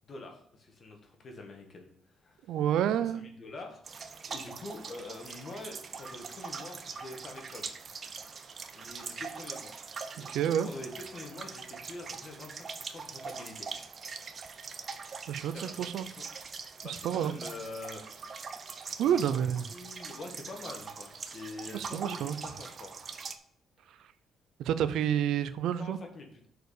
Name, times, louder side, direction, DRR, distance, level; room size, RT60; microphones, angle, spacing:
voice 1, 0.1-1.9 2.2-2.6 3.0-7.7 8.7-9.7 10.2-13.7 15.5-16.3 16.8-18.0 18.9-22.9 25.8-26.5, left 2 dB, 45° left, 1.8 m, -45 dB
voice 2, 2.5-3.3 10.3-10.7 15.3-16.1 16.8-17.3 19.0-19.7 21.7-22.4 24.6-26.0, right 9 dB, 80° right, 0.5 m, -29 dB
sound 1, 3.9-23.4, right 5 dB, 45° right, 0.8 m, -43 dB
6.3 x 4.8 x 6.6 m
cardioid pair, 90°, 0 cm